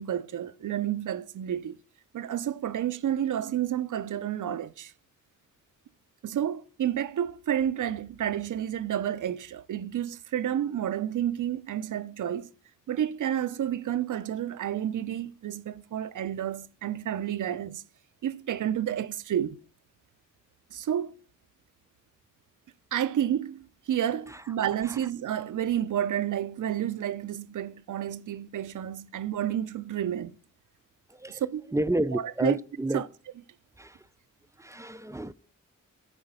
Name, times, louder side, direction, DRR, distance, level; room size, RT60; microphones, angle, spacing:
voice 1, 0.0-1.8 2.1-4.9 6.2-12.5 12.9-17.8 18.2-19.6 20.7-21.2 22.9-30.3 31.3-31.6 32.1-32.6 32.9-33.1, right 10 dB, 75° right, 0.5 m, -30 dB
voice 2, 31.1-31.4 31.7-33.0 33.8-34.1 34.6-35.3, right 1 dB, 10° right, 0.4 m, -30 dB
8.9 x 3.9 x 5.4 m
cardioid pair, 65°, 32 cm